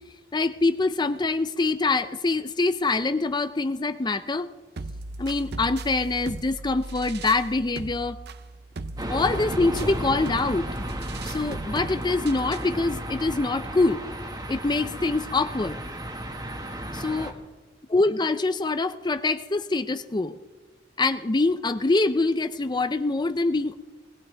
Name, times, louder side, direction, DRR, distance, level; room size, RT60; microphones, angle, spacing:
voice 1, 0.3-4.5 5.2-8.2 9.1-10.7 11.2-14.0 14.5-15.8 16.9-17.3 17.9-20.4 21.0-23.7, left 3 dB, 25° left, 10 dB, 0.5 m, -24 dB
sound 1, 4.8-12.8, right 2 dB, 60° right, 0.6 m, -38 dB
sound 2, 9.0-17.3, right 1 dB, 20° right, 1.6 m, -34 dB
20.5 x 19.5 x 3.4 m, 1.3 s
head